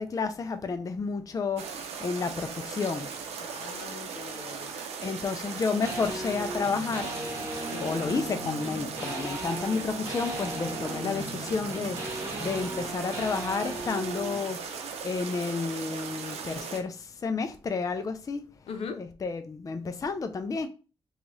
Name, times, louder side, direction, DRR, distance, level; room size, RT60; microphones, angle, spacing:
voice 1, 0.0-3.1 5.0-7.1 7.8-14.6 15.0-18.4 19.0-20.7, left 4 dB, 35° left, 0.4 m, -31 dB
sound 1, 1.6-16.8, right 6 dB, 85° right, 0.6 m, -38 dB
voice 2, 3.4-4.7 5.5-5.6 7.7-8.0 18.7-19.0, left 5 dB, 75° left, 0.6 m, -40 dB
sound 2, 5.8-14.5, right 1 dB, 25° right, 1.3 m, -37 dB
3.1 x 2.3 x 3.9 m
cardioid pair, 65°, 10 cm